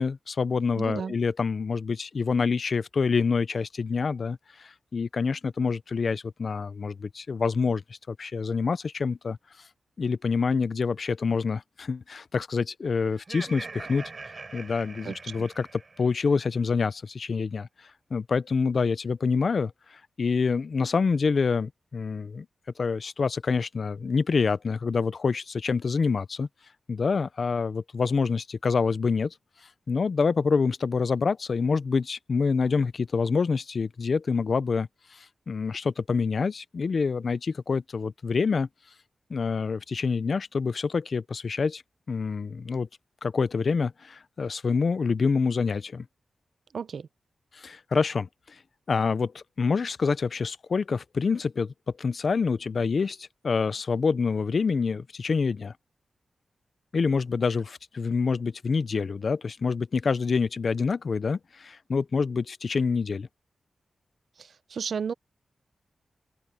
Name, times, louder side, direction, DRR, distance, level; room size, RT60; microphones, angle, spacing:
voice 1, 0.0-7.8 8.1-9.4 10.0-14.0 14.5-15.7 16.0-17.7 18.1-19.7 20.2-22.5 22.8-26.5 26.9-29.3 29.9-35.2 35.5-38.7 39.3-41.8 42.1-42.9 43.2-46.1 47.5-48.3 48.9-55.7 56.9-63.3, left 5 dB, 45° left, 0.5 m, -26 dB
voice 2, 0.8-1.1 15.0-15.5 46.7-47.1 64.4-65.1, right 6 dB, 60° right, 0.5 m, -33 dB
Laughter, 13.1-16.4, right 3 dB, 30° right, 7.2 m, -42 dB
open air
wide cardioid pair, 175°, 0 cm